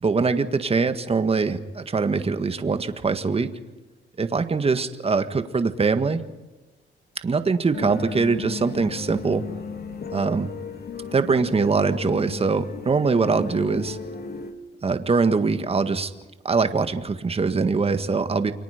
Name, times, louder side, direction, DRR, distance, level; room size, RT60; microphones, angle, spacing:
voice 1, 0.0-3.5 4.2-6.2 7.2-9.4 10.1-10.5 11.1-14.0 14.8-16.1 16.4-18.5, right 4 dB, 30° right, 9 dB, 1.8 m, -23 dB
sound 1, 7.7-14.5, left 5 dB, 50° left, 2.9 m, -35 dB
29.5 x 23.5 x 5.2 m, 1.1 s
cardioid pair, 90°, 20 cm